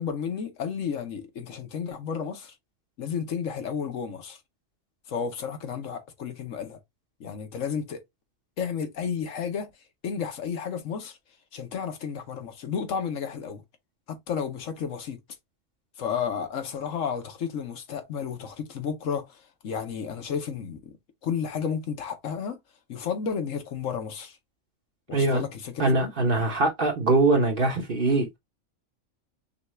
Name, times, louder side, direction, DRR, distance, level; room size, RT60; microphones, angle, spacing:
voice 1, 0.0-2.5 3.0-4.4 5.1-6.8 7.2-8.0 8.6-9.7 10.0-11.2 11.5-13.6 14.1-15.2 16.0-20.8 21.2-22.6 22.9-24.4 25.1-26.1, left 7 dB, 75° left, 1.3 m, -32 dB
voice 2, 25.1-25.4 25.8-28.4, right 2 dB, 45° right, 1.2 m, -22 dB
5.6 x 2.4 x 3.0 m
omnidirectional pair, 1.3 m